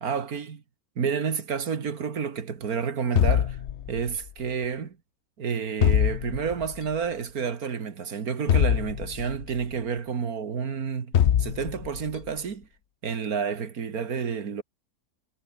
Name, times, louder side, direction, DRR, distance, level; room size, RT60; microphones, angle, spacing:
voice 1, 0.0-0.6 1.0-3.6 3.9-5.0 5.4-11.1 11.4-12.7 13.0-14.6, right 6 dB, 60° right, 2.2 m, -30 dB
sound 1, 3.2-4.3 5.8-6.8 8.5-9.6 11.1-12.1, left 10 dB, 55° left, 0.9 m, -23 dB
omnidirectional pair, 1.7 m